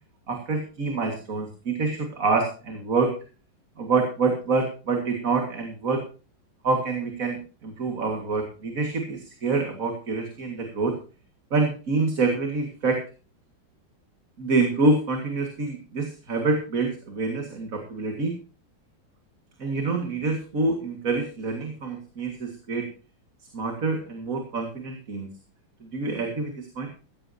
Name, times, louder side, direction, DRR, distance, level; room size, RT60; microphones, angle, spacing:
voice 1, 0.3-3.1 3.8-6.0 6.6-11.0 11.5-13.0 14.4-18.3 19.6-22.9 23.5-25.3 25.8-26.9, right 3 dB, 45° right, 4 dB, 2.3 m, -26 dB
16.0 x 14.5 x 2.8 m, 0.34 s
omnidirectional pair, 2.0 m